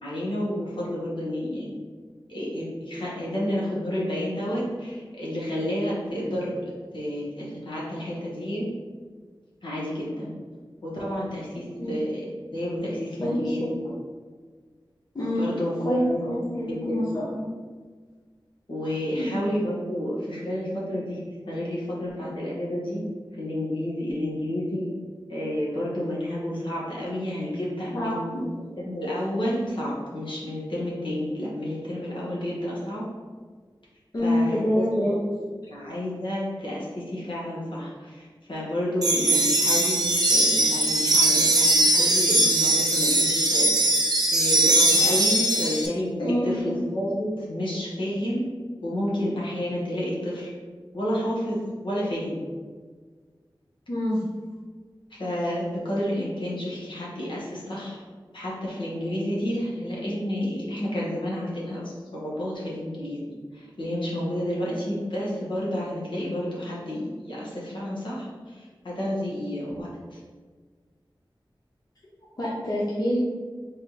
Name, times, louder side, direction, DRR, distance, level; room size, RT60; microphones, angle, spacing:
voice 1, 0.0-1.7 2.3-8.7 9.6-10.4 10.8-13.8 15.4-16.3 16.7-17.2 18.7-23.0 23.4-24.9 25.3-28.3 28.8-33.0 34.2-35.1 35.7-48.4 48.8-50.5 50.9-52.4 55.1-58.0 58.3-70.2, equal, 70° left, -6 dB, 1.3 m, -30 dB
voice 2, 13.2-13.9 15.1-15.5 15.8-17.4 19.2-19.4 27.9-28.5 34.1-35.2 46.2-46.8 53.9-54.2 72.4-73.2, equal, 50° left, -7 dB, 0.8 m, -26 dB
sound 1, 39.0-45.9, right 1 dB, 50° right, 0.6 m, -20 dB
4.2 x 3.5 x 2.9 m, 1.5 s
wide cardioid pair, 75°, 9 cm